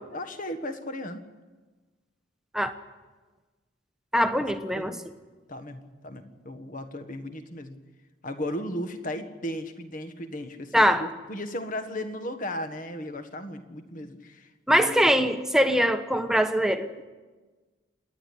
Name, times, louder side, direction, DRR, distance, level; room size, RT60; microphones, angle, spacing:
voice 1, 0.1-1.2 4.7-5.0 5.5-7.8 8.2-15.1 17.0-17.1, left 1 dB, 40° left, 8 dB, 1.5 m, -36 dB
voice 2, 4.1-5.0 10.7-11.0 14.7-16.9, equal, 5° right, 7 dB, 1.0 m, -22 dB
27.0 x 10.5 x 10.0 m, 1.3 s
head